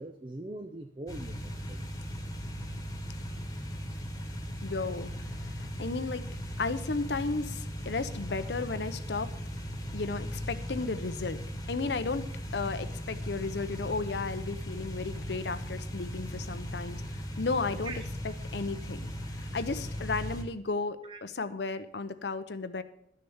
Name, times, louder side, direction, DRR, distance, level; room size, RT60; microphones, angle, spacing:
voice 1, 0.0-1.9 17.8-18.0 21.0-21.2, right 2 dB, 30° right, 7 dB, 0.6 m, -42 dB
sound 1, 1.1-20.4, equal, 20° left, 1.4 m, -38 dB
voice 2, 4.6-6.3 6.6-9.3 9.9-11.4 11.7-17.9 18.2-22.8, left 3 dB, 70° left, 11 dB, 0.7 m, -34 dB
12.0 x 6.6 x 7.1 m, 0.73 s
head